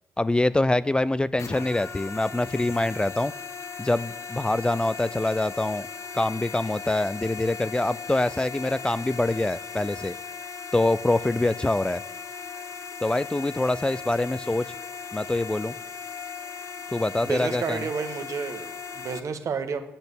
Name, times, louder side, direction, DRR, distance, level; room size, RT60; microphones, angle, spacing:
voice 1, 0.2-3.3 3.8-5.9 6.1-10.1 10.7-12.0 13.0-14.7 15.1-15.7 16.9-17.8, left 2 dB, 15° left, 17 dB, 0.4 m, -25 dB
sound 1, 1.4-19.2, left 5 dB, 55° left, 0.9 m, -38 dB
voice 2, 17.2-19.8, right 5 dB, 60° right, 7 dB, 1.3 m, -31 dB
8.0 x 6.8 x 8.2 m, 0.94 s
hypercardioid pair, 50°, 6 cm